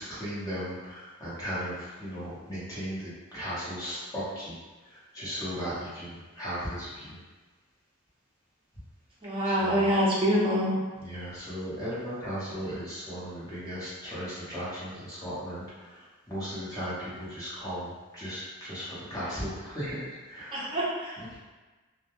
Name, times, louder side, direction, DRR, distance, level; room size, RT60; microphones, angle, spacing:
voice 1, 0.0-4.5 4.8-7.2 9.4-9.9 11.0-20.8 21.2-21.4, equal, 15° left, -10 dB, 0.8 m, -37 dB
voice 2, 9.2-10.7 20.5-21.1, equal, 25° right, -7 dB, 0.5 m, -25 dB
2.2 x 2.1 x 2.9 m, 1.3 s
head